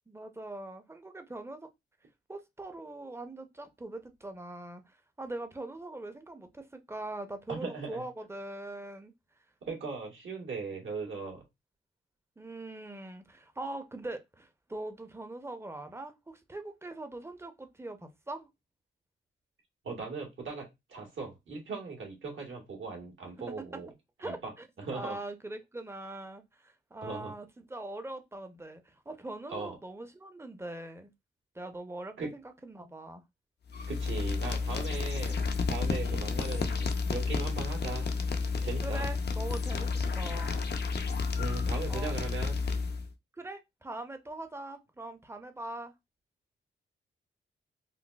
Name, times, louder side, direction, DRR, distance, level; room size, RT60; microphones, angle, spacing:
voice 1, 0.1-1.7 2.3-9.1 12.4-18.5 24.2-24.6 24.9-31.1 31.5-33.2 36.0-36.3 38.8-39.9 40.2-40.6 41.9-42.1 43.4-45.9, right 2 dB, 10° right, 0.6 m, -42 dB
voice 2, 7.5-8.0 9.6-11.4 19.8-23.9 24.2-24.5 24.8-25.2 27.0-27.3 29.5-29.8 32.2-32.3 33.9-35.4 35.7-38.2 38.6-39.1 41.4-42.6, right 4 dB, 70° right, 1.3 m, -39 dB
sound 1, 33.7-43.1, left 4 dB, 55° left, 0.5 m, -31 dB
3.9 x 2.1 x 2.3 m
cardioid pair, 65°, 21 cm